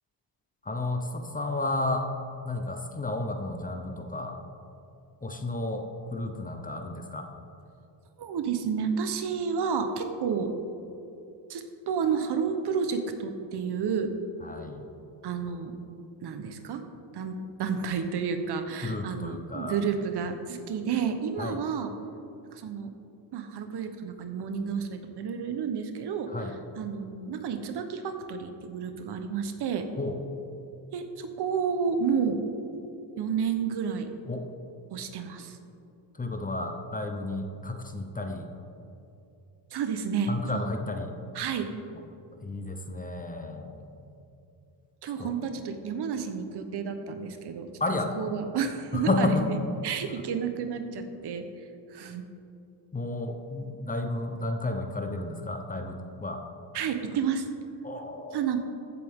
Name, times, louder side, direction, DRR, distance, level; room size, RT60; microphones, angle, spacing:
voice 1, 0.6-2.1 2.4-4.4 5.2-7.3 14.4-14.9 18.8-19.8 21.4-21.6 26.3-26.5 30.0-30.2 34.3-34.5 36.2-38.5 40.3-41.2 42.4-44.1 45.2-45.3 47.8-48.1 48.9-49.5 52.9-56.4 57.8-58.4, left 2 dB, 20° left, 5 dB, 0.8 m, -32 dB
voice 2, 8.2-10.5 11.5-14.1 15.2-15.7 16.2-16.8 17.1-21.9 22.5-22.9 23.3-26.3 26.8-29.9 30.9-32.4 33.2-34.1 34.9-35.6 39.7-40.7 41.3-41.7 45.0-47.7 48.2-49.6 49.8-51.4 51.9-52.2 56.7-57.5 58.3-58.6, right 6 dB, 60° right, 7 dB, 1.1 m, -30 dB
15.0 x 8.0 x 3.7 m, 2.7 s
cardioid pair, 120°, 45 cm